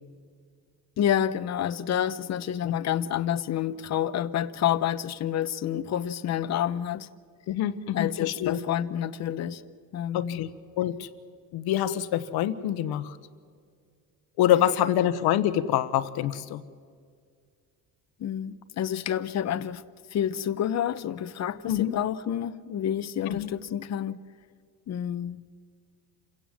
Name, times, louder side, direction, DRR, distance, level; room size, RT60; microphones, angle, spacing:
voice 1, 1.0-7.1 7.9-9.6 9.9-10.4 18.2-19.8 20.1-24.2 24.9-25.4, left 10 dB, 45° left, 0.9 m, -28 dB
voice 2, 7.5-8.6 10.1-10.5 10.8-11.1 11.5-13.2 14.4-16.6 21.7-21.9 23.3-23.5, left 11 dB, 75° left, 1.2 m, -26 dB
28.0 x 16.5 x 7.5 m
cardioid pair, 120°, 38 cm